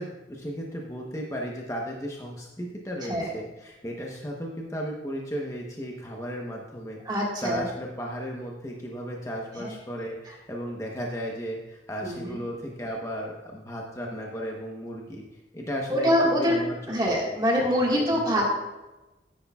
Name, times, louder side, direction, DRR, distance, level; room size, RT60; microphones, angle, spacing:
voice 1, 0.0-15.2 15.5-16.8 17.0-17.2 17.6-18.5, equal, 15° left, -1 dB, 1.0 m, -35 dB
voice 2, 7.1-7.7 9.6-9.7 12.0-12.4 15.9-16.6 16.9-18.5, equal, 25° right, -2 dB, 1.8 m, -24 dB
13.0 x 9.8 x 2.4 m, 1.1 s
head